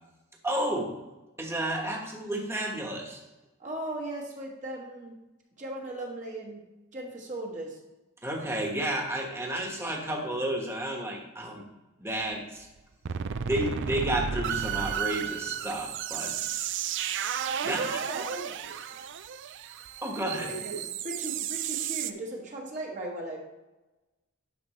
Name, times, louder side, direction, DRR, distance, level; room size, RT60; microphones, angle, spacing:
voice 1, 0.4-0.9 1.4-3.2 8.2-11.6 12.0-12.7 13.4-16.4 17.6-18.0 20.0-20.5, right 1 dB, 10° right, 0 dB, 1.3 m, -31 dB
voice 2, 3.6-5.1 5.6-6.6 6.9-7.8 17.6-19.0 20.1-23.4, right 1 dB, 35° right, -1 dB, 1.4 m, -38 dB
sound 1, 12.3-12.4 12.8-12.9 13.0-22.1, right 8 dB, 55° right, 0.4 m, -33 dB
10.5 x 6.0 x 3.2 m, 1.1 s
head